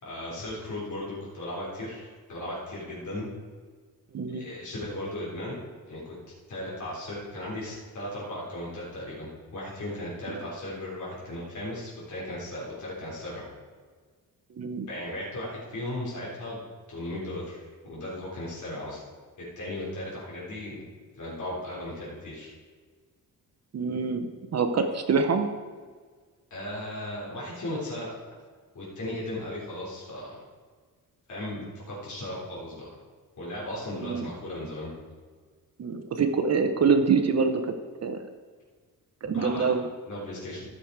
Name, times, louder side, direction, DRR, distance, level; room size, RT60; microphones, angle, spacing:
voice 1, 0.0-3.3 4.3-5.6 5.8-6.2 6.5-13.4 14.8-16.6 16.9-19.0 19.6-20.8 21.2-22.5 26.5-28.1 28.7-30.3 31.3-32.8 33.4-34.9 39.2-39.7 40.1-40.7, left 1 dB, 55° left, -7 dB, 3.6 m, -36 dB
voice 2, 4.1-4.5 14.5-14.9 23.7-25.5 34.0-34.3 35.8-37.7 38.0-38.2 39.2-39.8, right 5 dB, 50° right, 7 dB, 0.8 m, -25 dB
13.0 x 6.6 x 4.7 m, 1.5 s
wide cardioid pair, 135°, 35 cm